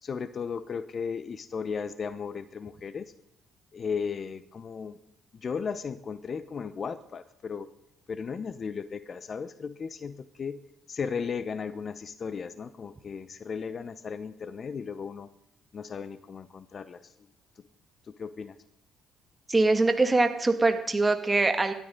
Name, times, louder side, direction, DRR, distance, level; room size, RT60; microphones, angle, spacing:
voice 1, 0.0-3.1 3.7-5.0 5.3-7.7 8.1-10.6 10.9-15.3 15.7-17.1 17.6-17.7 18.1-18.6, left 6 dB, 45° left, 16 dB, 0.9 m, -35 dB
voice 2, 19.5-21.7, right 3 dB, 20° right, 7 dB, 2.3 m, -23 dB
28.5 x 12.5 x 4.0 m, 0.75 s
hypercardioid pair, 45°, 0 cm